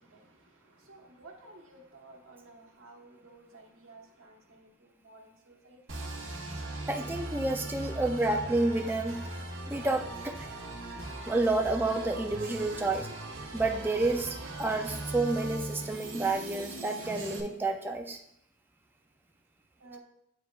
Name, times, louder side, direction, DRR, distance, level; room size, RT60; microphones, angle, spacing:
voice 1, 0.9-4.7 5.0-5.8 19.8-20.0, right 2 dB, 90° right, 1 dB, 1.2 m, -53 dB
sound 1, 5.9-17.4, right 2 dB, 70° right, 0.9 m, -39 dB
voice 2, 6.9-9.2 9.7-10.5 11.3-13.1 13.5-18.2, right 2 dB, 10° right, 3 dB, 0.4 m, -30 dB
8.7 x 4.7 x 2.3 m, 0.74 s
head